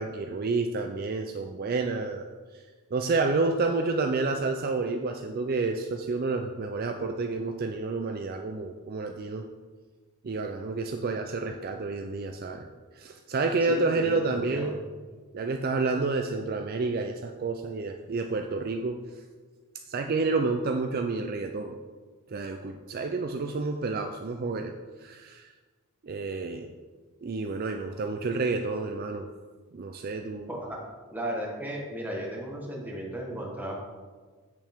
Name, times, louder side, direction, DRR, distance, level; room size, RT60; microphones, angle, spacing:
voice 1, 0.0-2.3 2.5-2.6 2.9-9.4 10.2-12.7 12.9-14.7 15.3-19.0 19.9-21.8 22.3-24.7 25.0-25.5 26.0-26.7 27.2-29.3 29.7-30.5, right 3 dB, 40° right, 4 dB, 0.4 m, -29 dB
voice 2, 13.7-14.8 30.5-30.8 31.1-33.8, right 1 dB, 10° right, -2 dB, 1.3 m, -35 dB
7.9 x 7.2 x 3.6 m, 1.4 s
head